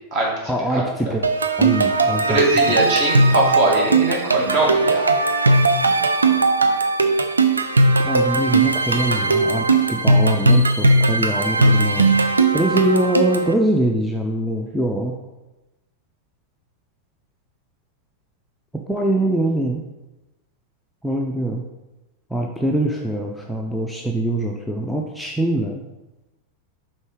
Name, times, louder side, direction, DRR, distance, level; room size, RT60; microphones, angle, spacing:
voice 1, 0.5-1.2 1.6-2.4 8.0-12.1 12.5-15.2 18.9-19.8 21.0-21.6 22.3-25.8, right 1 dB, ahead, 0 dB, 0.5 m, -23 dB
sound 1, 1.2-13.5, right 2 dB, 75° right, 0.4 m, -18 dB
voice 2, 2.2-5.1, right 1 dB, 40° right, -3 dB, 1.9 m, -22 dB
5.3 x 3.7 x 4.7 m, 1.0 s
figure-of-eight pair, 90°, 0 cm